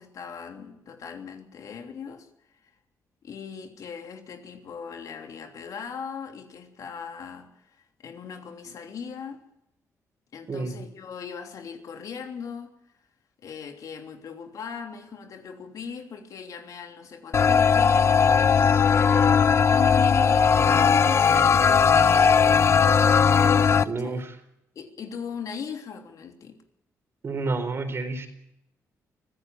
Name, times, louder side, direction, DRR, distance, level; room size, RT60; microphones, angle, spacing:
voice 1, 0.0-2.7 3.2-9.4 10.3-12.8 13.4-18.3 18.9-22.2 23.8-24.2 24.7-26.6, left 6 dB, 65° left, 3.2 m, -39 dB
voice 2, 10.5-10.8 23.8-24.4 27.2-28.3, right 3 dB, 40° right, 4.2 m, -29 dB
sound 1, 17.3-23.8, left 6 dB, 45° left, 0.8 m, -18 dB
25.0 x 15.5 x 7.3 m
cardioid pair, 110°, 6 cm